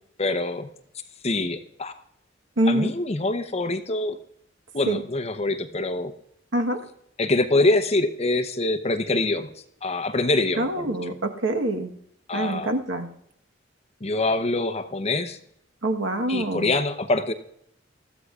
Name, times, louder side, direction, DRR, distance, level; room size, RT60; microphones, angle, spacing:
voice 1, 0.2-0.7 1.2-1.9 2.7-4.2 4.7-6.1 7.2-9.5 9.8-10.9 12.3-12.7 14.0-15.4 16.3-17.3, left 2 dB, 35° left, 8 dB, 0.8 m, -24 dB
voice 2, 2.6-2.9 4.8-5.0 6.5-6.8 10.6-11.9 12.3-13.1 15.8-16.7, right 1 dB, 75° right, 5 dB, 1.3 m, -25 dB
21.0 x 14.0 x 2.4 m, 0.73 s
head